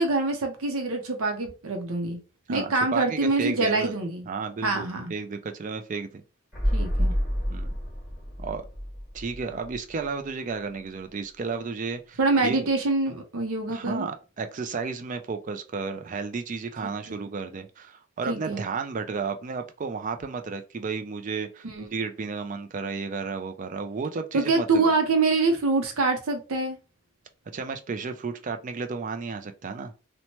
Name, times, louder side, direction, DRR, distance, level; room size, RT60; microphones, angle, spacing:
voice 1, 0.0-2.2 2.5-4.3 4.6-5.1 6.7-7.1 12.2-14.1 16.8-17.3 18.3-18.7 21.6-21.9 24.3-26.8, right 3 dB, 85° right, 0.6 m, -25 dB
voice 2, 2.5-3.9 4.3-6.2 7.5-7.7 8.4-8.6 9.1-12.7 13.7-24.9 27.5-29.9, right 4 dB, 35° right, 0.3 m, -33 dB
sound 1, 6.5-10.3 10.5-10.6, equal, ahead, 1.2 m, -29 dB
2.9 x 2.1 x 2.9 m
head